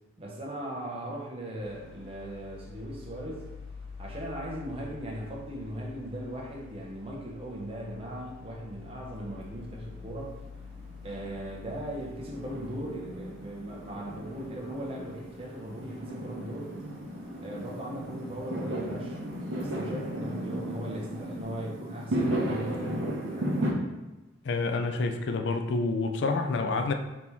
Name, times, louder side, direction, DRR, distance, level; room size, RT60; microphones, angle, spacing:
voice 1, 0.2-3.4 4.0-10.4 11.0-16.8 17.4-19.2 19.5-23.5, right 1 dB, 30° right, 0.7 m, -38 dB
sound 1, 1.6-21.5, left 4 dB, ahead, 1.4 m, -49 dB
Fireworks, 9.1-23.7, right 1 dB, 70° right, 0.8 m, -35 dB
voice 2, 24.4-26.9, left 3 dB, 60° left, 0.4 m, -28 dB
4.1 x 2.9 x 3.4 m
head